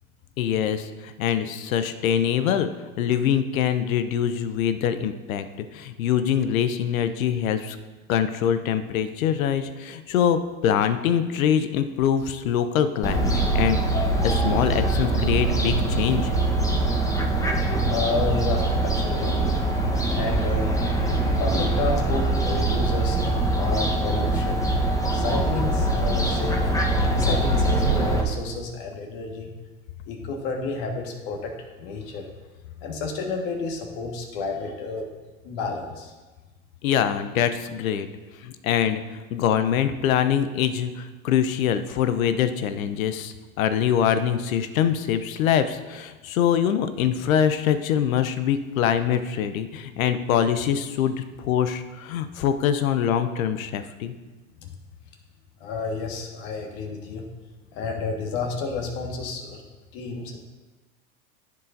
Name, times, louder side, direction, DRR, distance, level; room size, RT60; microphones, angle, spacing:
voice 1, 0.4-2.7 3.0-7.8 8.1-13.8 14.2-16.3 36.8-38.1 38.4-54.1, left 9 dB, 75° left, 10 dB, 0.7 m, -24 dB
Fowl, 13.0-28.2, right 2 dB, 10° left, 1.0 m, -23 dB
voice 2, 17.8-19.6 20.1-20.7 21.4-23.2 23.5-24.6 25.1-26.7 27.1-29.5 30.0-32.3 32.8-35.1 35.4-36.1 54.6-54.7 55.6-57.2 57.7-59.6 59.9-60.4, left 3 dB, 55° left, 1 dB, 1.6 m, -31 dB
13.5 x 4.7 x 2.6 m, 1.2 s
hypercardioid pair, 95°, 42 cm